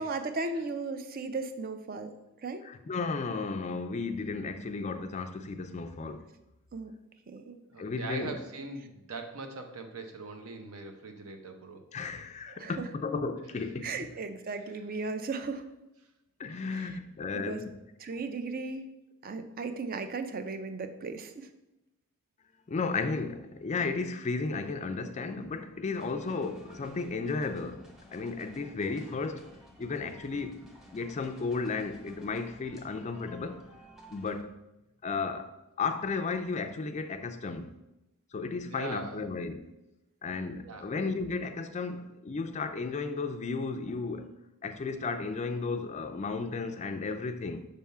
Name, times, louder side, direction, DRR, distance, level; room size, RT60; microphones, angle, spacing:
voice 1, 0.0-2.1 2.4-2.6 6.7-7.0 7.3-7.6 12.6-12.9 13.8-15.7 16.7-16.8 17.3-17.6 18.0-18.9 19.2-21.5, right 3 dB, 40° right, 0.5 m, -36 dB
voice 2, 2.6-6.3 7.8-8.4 11.9-14.1 16.4-17.8 22.7-29.5 29.8-33.7 34.1-34.6 35.0-37.7 38.3-39.7 40.2-44.3 44.6-47.6, left 4 dB, 30° left, 0.4 m, -34 dB
voice 3, 7.7-11.8 14.7-14.8 16.5-16.9 38.6-39.2 40.6-40.9, right 3 dB, 70° right, 0.8 m, -41 dB
sound 1, 25.9-34.4, left 1 dB, ahead, 0.7 m, -54 dB
5.3 x 3.5 x 5.4 m
head